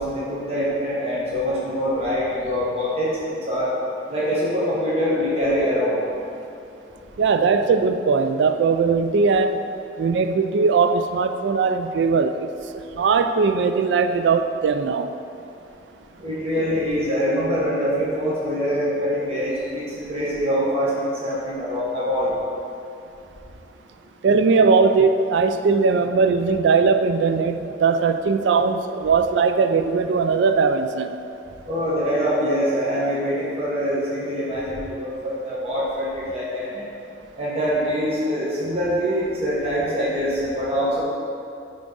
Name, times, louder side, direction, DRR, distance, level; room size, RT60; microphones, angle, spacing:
voice 1, 0.0-3.7 4.1-6.0 16.2-22.3 31.6-36.8 37.4-41.0, equal, 35° right, -8 dB, 1.2 m, -24 dB
voice 2, 7.2-9.7 10.0-12.5 13.0-15.1 24.2-31.2, right 5 dB, 80° right, 8 dB, 0.3 m, -19 dB
9.6 x 3.7 x 3.9 m, 2.7 s
head